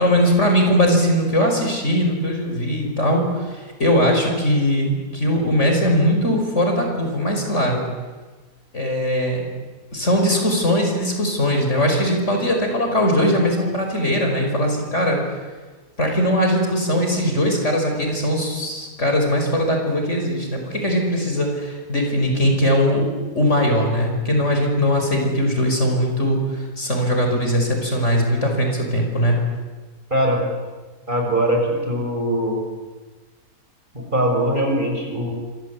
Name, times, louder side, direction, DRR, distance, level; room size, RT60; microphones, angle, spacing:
voice 1, 0.0-7.8 8.7-9.5 9.9-15.2 16.0-23.1 23.4-29.4, equal, 55° left, 3 dB, 5.8 m, -20 dB
voice 2, 30.1-30.4 31.1-32.6 33.9-35.3, right 1 dB, 35° right, 1 dB, 7.0 m, -21 dB
27.0 x 26.5 x 8.4 m, 1.3 s
omnidirectional pair, 1.5 m